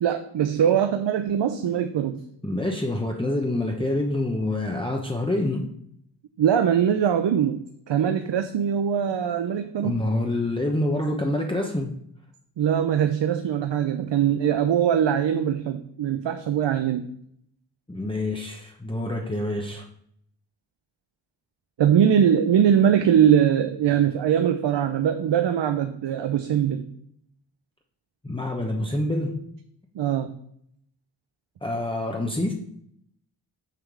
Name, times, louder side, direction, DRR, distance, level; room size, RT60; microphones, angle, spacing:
voice 1, 0.0-2.2 6.4-10.0 12.6-17.1 21.8-26.9 29.9-30.3, right 9 dB, 70° right, 8 dB, 0.7 m, -22 dB
voice 2, 2.4-5.7 9.8-12.0 17.9-19.8 28.2-29.4 31.6-32.5, left 1 dB, 10° left, 0 dB, 1.0 m, -26 dB
6.8 x 3.5 x 6.2 m, 0.71 s
cardioid pair, 45°, 45 cm